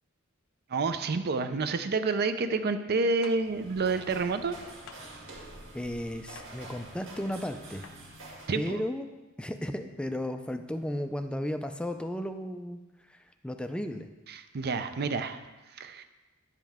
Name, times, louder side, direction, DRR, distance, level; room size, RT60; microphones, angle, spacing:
voice 1, 0.7-4.6 8.5-8.8 14.3-15.4 15.7-16.0, right 4 dB, 50° right, 10 dB, 0.5 m, -29 dB
sound 1, 3.2-3.4 4.9-5.0 6.3-6.5 7.8-8.0, left 6 dB, 70° left, 0.6 m, -47 dB
sound 2, 3.3-8.6, right 2 dB, 70° right, 2.0 m, -47 dB
voice 2, 5.7-7.9 8.5-9.1 9.4-12.8 13.1-14.1, left 1 dB, 5° left, 7 dB, 0.4 m, -34 dB
10.0 x 7.5 x 3.5 m, 1.2 s
head